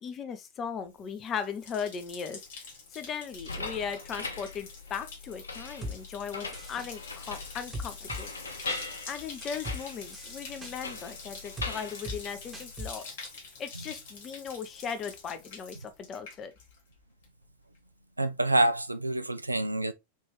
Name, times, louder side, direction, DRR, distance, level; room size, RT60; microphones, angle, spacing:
voice 1, 0.0-2.4 2.9-8.3 9.1-13.1 13.6-16.5, left 7 dB, 30° left, 0.6 m, -38 dB
Bathtub (filling or washing), 0.9-17.0 17.2-17.8, left 4 dB, 55° left, 1.2 m, -46 dB
sound 1, 3.3-13.0, left 3 dB, 75° left, 0.5 m, -41 dB
sound 2, 5.8-6.0 6.5-6.9 7.7-8.2 8.7-8.8 9.4-9.8 10.1-10.7 11.6-11.7 12.0-12.2 12.5-12.9 13.2-13.3, left 1 dB, 15° right, 1.0 m, -38 dB
voice 2, 18.2-19.9, right 1 dB, 85° right, 0.3 m, -27 dB
3.6 x 2.6 x 2.9 m
figure-of-eight pair, 90°, 0 cm